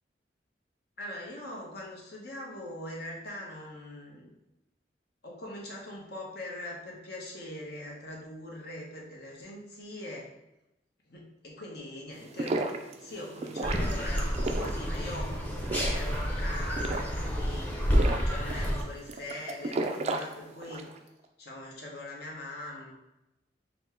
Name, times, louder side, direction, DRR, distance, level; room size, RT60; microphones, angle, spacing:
voice 1, 1.0-4.4 5.2-10.3 11.0-12.6 13.0-15.3 15.9-17.7 18.2-20.9 21.4-22.9, left 1 dB, 65° left, -2 dB, 1.0 m, -42 dB
sound 1, 12.1-21.0, right 2 dB, 40° right, 0.3 m, -35 dB
sound 2, 13.6-18.8, equal, 10° left, 0.7 m, -29 dB
4.2 x 2.2 x 4.3 m, 0.92 s
head